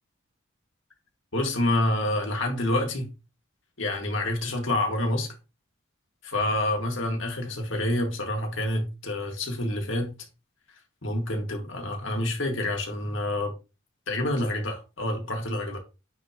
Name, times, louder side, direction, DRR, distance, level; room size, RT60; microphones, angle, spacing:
voice 1, 1.3-3.1 3.8-5.3 6.2-10.1 11.0-13.5 14.1-15.8, left 1 dB, 75° left, 1.9 m, -27 dB
9.4 x 3.5 x 2.9 m
head